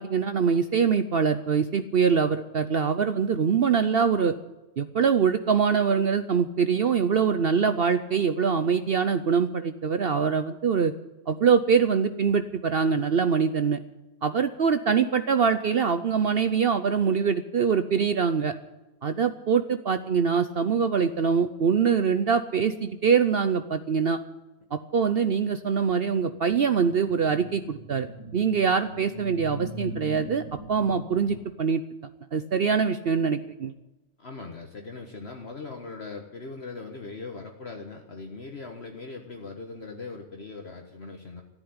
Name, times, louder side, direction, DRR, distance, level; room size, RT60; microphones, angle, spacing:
voice 1, 0.0-4.3 4.8-10.9 11.3-13.8 14.2-18.5 19.0-24.2 24.7-28.1 28.3-30.4 30.7-31.8 32.3-33.7, right 6 dB, 55° right, 10 dB, 0.8 m, -24 dB
sound 1, 26.3-31.4, right 1 dB, 25° right, 3.0 m, -41 dB
voice 2, 34.2-41.4, left 3 dB, 50° left, 2 dB, 1.7 m, -40 dB
14.0 x 10.0 x 9.6 m, 1.0 s
omnidirectional pair, 1.4 m